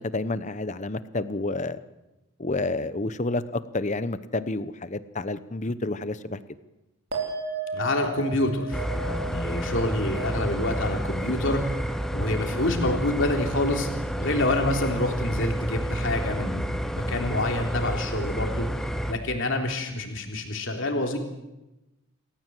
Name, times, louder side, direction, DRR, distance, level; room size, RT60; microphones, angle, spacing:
voice 1, 0.0-1.8 2.4-6.4, left 2 dB, 35° left, 14 dB, 0.9 m, -29 dB
sound 1, 7.1-13.8 14.1-14.7, right 3 dB, 50° right, 4.4 m, -37 dB
voice 2, 7.7-11.6 12.1-13.9 14.2-16.6 16.9-18.7 19.1-21.2, left 1 dB, 60° left, 2 dB, 3.5 m, -27 dB
sound 2, 8.7-19.1, equal, ahead, 1.0 m, -30 dB
28.0 x 14.5 x 7.7 m, 0.99 s
head